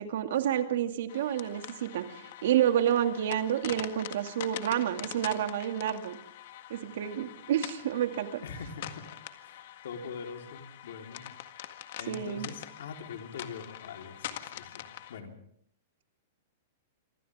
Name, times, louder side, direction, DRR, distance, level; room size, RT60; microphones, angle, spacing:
voice 1, 0.0-6.2 6.7-8.3 12.1-12.5, right 10 dB, 60° right, 6 dB, 2.4 m, -29 dB
sound 1, 1.1-15.2, left 12 dB, 50° left, 1.8 m, -44 dB
voice 2, 8.4-9.2 9.4-11.3 11.6-11.7 12.0-15.3, left 5 dB, 75° left, 3 dB, 4.2 m, -43 dB
28.0 x 25.0 x 3.7 m, 0.66 s
supercardioid pair, 175°, 0 cm